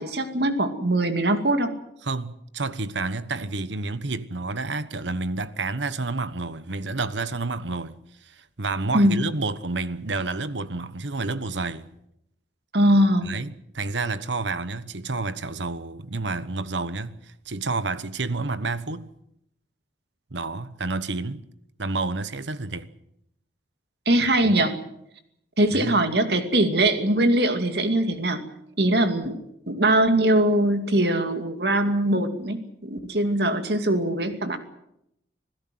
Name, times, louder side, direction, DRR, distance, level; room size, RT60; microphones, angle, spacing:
voice 1, 0.0-1.7 8.9-9.2 12.7-13.3 24.1-24.8 25.6-28.4 28.8-29.4 29.7-34.6, right 1 dB, 60° right, 2.5 m, -21 dB
voice 2, 2.0-11.9 13.3-19.1 20.3-21.4 21.8-22.9 24.4-24.5 25.7-26.0, right 3 dB, 80° right, 1.2 m, -30 dB
27.0 x 16.5 x 7.8 m
head